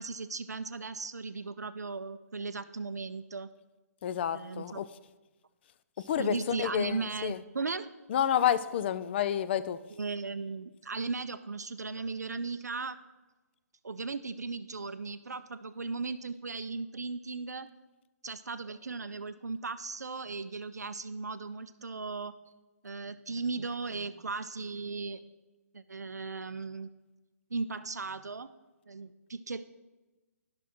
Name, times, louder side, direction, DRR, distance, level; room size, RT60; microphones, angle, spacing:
voice 1, 0.0-3.5 4.3-4.8 6.2-7.9 10.0-13.0 13.8-17.7 18.2-22.3 22.8-25.2 25.7-26.9 27.5-28.5 28.9-29.6, right 4 dB, 85° right, 0.4 m, -37 dB
voice 2, 4.0-4.9 6.0-7.4 8.1-9.8, left 10 dB, 40° left, 0.4 m, -29 dB
12.0 x 6.0 x 3.0 m
figure-of-eight pair, 130°, 9 cm